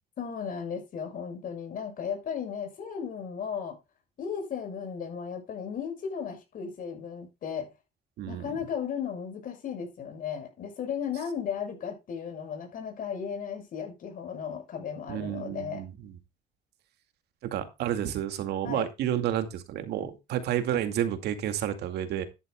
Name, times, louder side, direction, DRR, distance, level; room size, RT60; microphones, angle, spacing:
voice 1, 0.2-3.8 4.2-7.7 8.3-15.9 18.6-18.9, left 7 dB, 55° left, 7.0 m, -35 dB
voice 2, 8.2-8.6 15.1-16.1 17.4-22.2, right 11 dB, 75° right, 2.2 m, -30 dB
12.5 x 11.0 x 2.3 m
cardioid pair, 110°, 17 cm